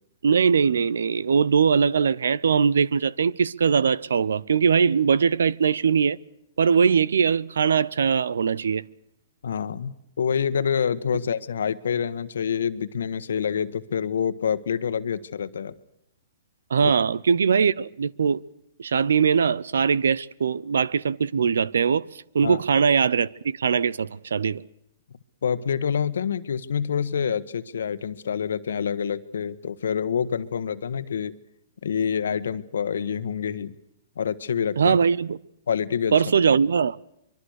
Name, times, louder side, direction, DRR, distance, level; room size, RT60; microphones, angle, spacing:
voice 1, 0.2-6.2 6.6-8.8 16.7-18.4 18.8-24.6 34.8-35.4 36.1-37.0, right 6 dB, 90° right, 0.8 m, -21 dB
voice 2, 9.4-15.8 16.8-16.9 22.4-22.6 25.4-31.3 31.8-33.7 34.2-35.0 35.7-36.1, left 7 dB, 85° left, 1.4 m, -27 dB
24.5 x 23.5 x 6.6 m
hypercardioid pair, 145°, 0 cm